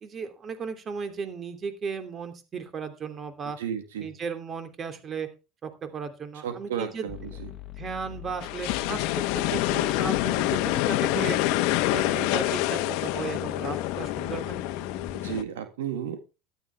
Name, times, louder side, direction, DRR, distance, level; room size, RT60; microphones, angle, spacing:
voice 1, 0.0-3.6 4.0-5.3 5.6-7.1 7.8-11.4 11.8-14.6, right 6 dB, 35° right, 2.9 m, -35 dB
voice 2, 3.6-4.1 6.4-7.5 15.2-16.2, right 9 dB, 90° right, 1.9 m, -33 dB
sound 1, 7.1-15.4, left 8 dB, 45° left, 1.2 m, -43 dB
sound 2, 8.4-15.4, left 16 dB, 70° left, 1.1 m, -27 dB
13.0 x 12.0 x 3.4 m
supercardioid pair, 100°, 0 cm